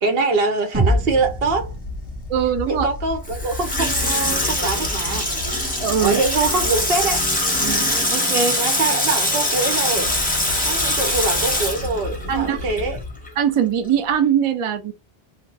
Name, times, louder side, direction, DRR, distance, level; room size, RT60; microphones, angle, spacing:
voice 1, 0.0-1.7 2.7-5.3 6.0-7.2 8.6-10.2 10.6-13.0, right 3 dB, 70° right, 0.9 m, -23 dB
sound 1, 0.7-8.1 9.9-13.4, left 3 dB, 40° left, 0.6 m, -33 dB
sound 2, 0.7-4.7, right 1 dB, 15° right, 1.1 m, -27 dB
voice 2, 2.3-2.9 5.8-6.2 7.6-7.9 8.1-8.6 12.3-12.6 13.4-14.9, right 8 dB, 55° right, 0.3 m, -21 dB
Water tap faucet / Sink (filling or washing), 3.2-13.0 13.3-13.4, left 1 dB, 10° left, 0.8 m, -23 dB
2.6 x 2.2 x 3.2 m
omnidirectional pair, 1.0 m